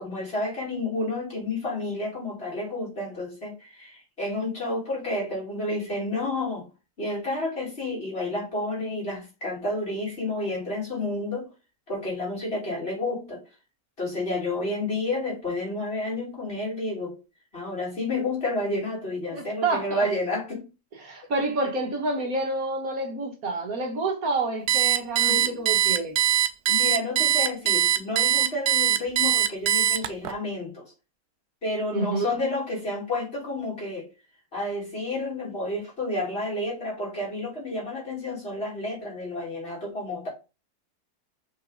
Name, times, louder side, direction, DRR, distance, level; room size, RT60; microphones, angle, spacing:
voice 1, 0.0-6.6 7.0-11.5 11.9-13.4 14.0-17.2 17.5-20.7 25.3-25.6 26.7-30.8 31.6-34.1 34.5-40.3, left 2 dB, 40° left, 3.6 m, -30 dB
voice 2, 19.3-20.1 21.0-26.2 31.9-32.3, right 3 dB, 65° right, 1.8 m, -28 dB
Alarm, 24.7-30.3, right 10 dB, 85° right, 1.2 m, -22 dB
5.5 x 5.5 x 3.9 m
omnidirectional pair, 1.6 m